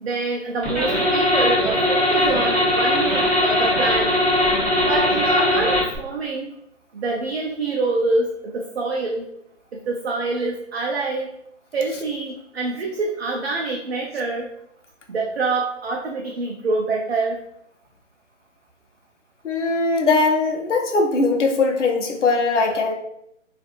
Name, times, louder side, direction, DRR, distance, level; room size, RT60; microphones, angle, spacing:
voice 1, 0.0-4.1 4.8-6.5 6.9-9.3 9.7-11.3 11.7-14.5 15.1-17.4, right 3 dB, 55° right, -1 dB, 0.5 m, -25 dB
sound 1, 0.6-6.0, left 1 dB, ahead, 0.9 m, -20 dB
voice 2, 19.4-22.9, left 3 dB, 70° left, 2 dB, 0.6 m, -20 dB
3.3 x 2.4 x 2.4 m, 0.77 s
figure-of-eight pair, 150°, 38 cm